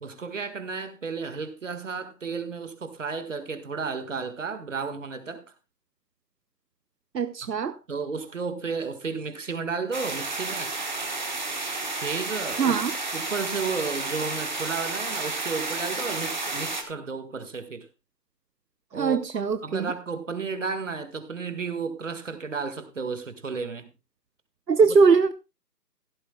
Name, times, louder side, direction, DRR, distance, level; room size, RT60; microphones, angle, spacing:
voice 1, 0.0-5.4 7.4-7.5 7.9-10.8 11.9-12.8 13.1-17.9 18.9-23.9, right 5 dB, 50° right, 1.7 m, -33 dB
voice 2, 7.1-7.8 12.6-12.9 18.9-19.9 24.7-25.3, right 5 dB, 80° right, 0.9 m, -21 dB
sound 1, 9.9-16.8, right 3 dB, 30° right, 1.2 m, -31 dB
16.0 x 12.0 x 2.2 m
figure-of-eight pair, 170°, 49 cm